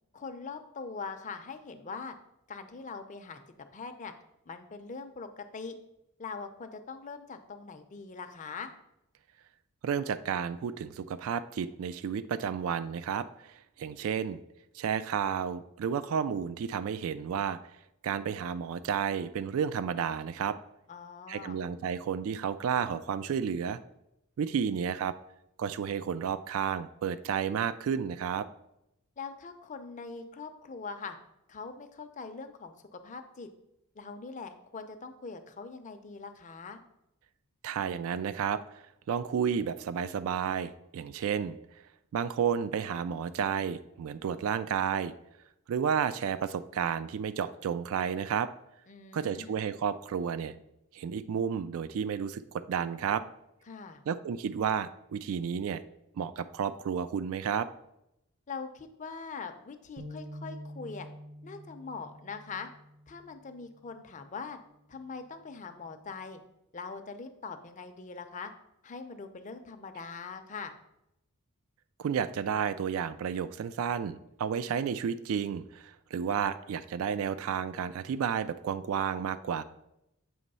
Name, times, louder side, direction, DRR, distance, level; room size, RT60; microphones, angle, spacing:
voice 1, 0.1-2.1 2.5-3.4 3.7-4.1 4.5-5.7 6.2-8.7 20.9-21.6 29.2-31.2 31.5-33.5 33.9-36.8 48.9-49.6 53.7-54.0 58.5-61.1 61.4-62.7 63.1-64.6 64.9-66.4 66.7-68.5 68.8-70.7, left 4 dB, 35° left, 7 dB, 0.5 m, -42 dB
voice 2, 9.8-14.4 14.7-17.6 18.0-20.6 21.3-23.8 24.4-25.1 25.6-28.5 37.6-41.6 42.1-45.1 45.7-48.5 49.1-50.6 50.9-53.2 54.1-55.8 56.2-57.7 72.0-79.6, right 7 dB, 65° right, 14 dB, 0.3 m, -31 dB
sound 1, 60.0-63.5, equal, 85° right, 0.9 m, -46 dB
7.7 x 3.0 x 5.4 m, 0.84 s
head